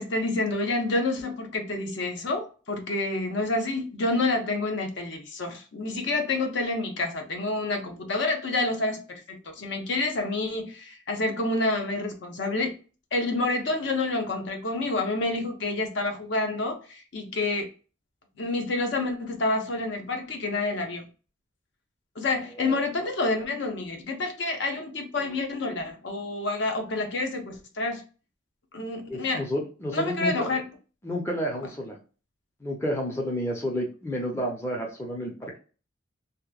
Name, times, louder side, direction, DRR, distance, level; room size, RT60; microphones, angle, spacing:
voice 1, 0.0-12.8 13.1-17.7 18.4-21.1 22.2-28.0 28.7-29.5 29.9-30.7, left 2 dB, 55° left, 3 dB, 0.6 m, -28 dB
voice 2, 29.1-30.3 31.0-32.0 32.6-35.6, equal, 15° left, -1 dB, 0.5 m, -30 dB
2.9 x 2.2 x 2.3 m, 0.36 s
head